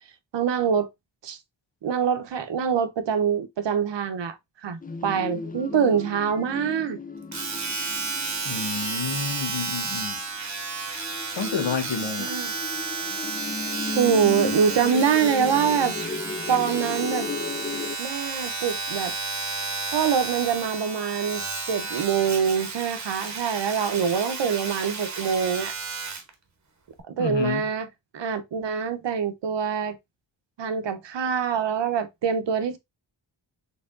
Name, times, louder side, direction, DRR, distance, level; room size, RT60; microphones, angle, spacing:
voice 1, 0.3-0.9 1.2-1.4 1.8-4.4 4.6-7.0 12.2-12.5 14.0-15.9 16.5-17.3 18.0-19.1 19.9-25.7 27.1-27.9 28.1-30.0 30.6-32.8, right 7 dB, 70° right, 0.7 m, -25 dB
sound 1, 4.8-10.0 10.8-18.0, left 4 dB, 20° left, 0.3 m, -35 dB
Domestic sounds home sounds, 7.3-26.3 27.0-27.1, right 4 dB, 40° right, 0.9 m, -32 dB
voice 2, 8.4-10.2 11.3-12.4 27.2-27.6, left 5 dB, 75° left, 0.9 m, -29 dB
4.4 x 3.4 x 2.4 m
wide cardioid pair, 165°, 45 cm